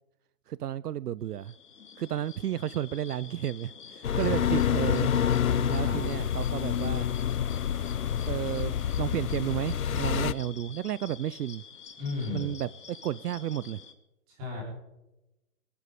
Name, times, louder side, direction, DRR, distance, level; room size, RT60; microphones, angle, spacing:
voice 1, 0.5-1.5 2.0-5.1 5.7-7.1 8.3-11.6 12.3-13.8, right 11 dB, 75° right, 0.6 m, -32 dB
sound 1, 1.3-13.9, left 6 dB, 80° left, 2.5 m, -48 dB
sound 2, 4.0-10.3, left 9 dB, 60° left, 0.7 m, -28 dB
voice 2, 4.2-4.6 5.4-6.0 12.0-12.5 14.3-14.6, left 3 dB, 10° right, 3.7 m, -35 dB
23.0 x 11.5 x 5.0 m
hypercardioid pair, 180°, 47 cm